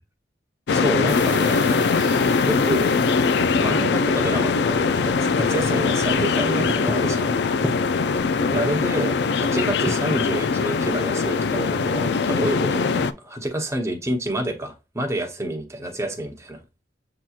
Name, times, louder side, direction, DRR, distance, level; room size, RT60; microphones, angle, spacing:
sound 1, 0.7-13.1, left 5 dB, 70° left, 0.4 m, -21 dB
voice 1, 0.7-1.8 2.4-2.9 3.6-7.3 8.5-16.6, right 1 dB, 15° right, 0.9 m, -28 dB
sound 2, 1.1-3.9, right 6 dB, 45° right, 1.2 m, -40 dB
sound 3, 7.6-11.1, equal, 5° left, 0.6 m, -35 dB
7.5 x 2.9 x 2.3 m
head